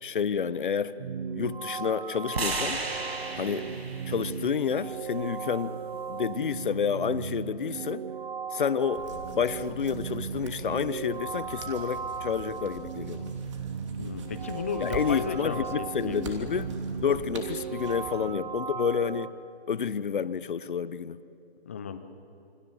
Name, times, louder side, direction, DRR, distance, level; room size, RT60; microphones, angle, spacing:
voice 1, 0.0-1.0 1.3-2.8 3.4-3.7 4.1-5.8 6.1-8.1 8.5-9.1 9.3-13.3 14.8-16.7 17.0-19.4 19.7-21.2, left 7 dB, 55° left, 1.0 m, -29 dB
sound 1, 1.0-19.3, right 6 dB, 45° right, 1.2 m, -37 dB
sound 2, 2.3-6.5, right 3 dB, 75° right, 6.6 m, -36 dB
sound 3, 8.9-18.1, right 3 dB, 30° right, 2.9 m, -43 dB
voice 2, 14.0-16.7 18.2-18.4 21.6-22.0, left 6 dB, 15° left, 0.6 m, -35 dB
27.5 x 25.0 x 8.0 m
hypercardioid pair, 160°, 31 cm